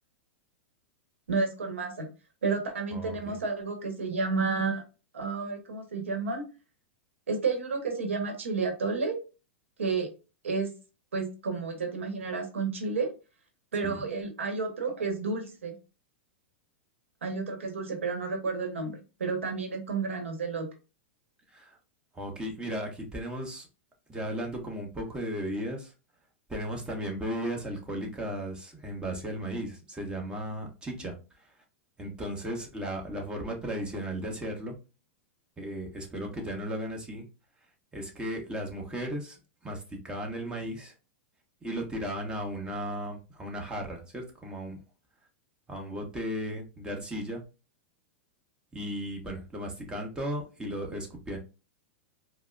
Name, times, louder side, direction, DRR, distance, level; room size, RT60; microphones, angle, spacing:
voice 1, 1.3-2.1 2.4-4.8 5.1-6.4 7.3-9.2 9.8-10.1 10.4-10.7 11.1-13.1 13.7-15.8 17.2-20.7, right 4 dB, 90° right, 3 dB, 1.0 m, -31 dB
voice 2, 2.9-3.4 13.8-14.0 21.5-21.8 22.1-23.7 24.1-25.9 26.5-31.5 32.0-34.8 35.6-37.2 37.9-40.9 41.6-44.8 45.7-47.4 48.7-51.4, equal, 15° right, 1 dB, 1.1 m, -35 dB
4.6 x 2.1 x 2.3 m, 0.31 s
hypercardioid pair, 110°, 7 cm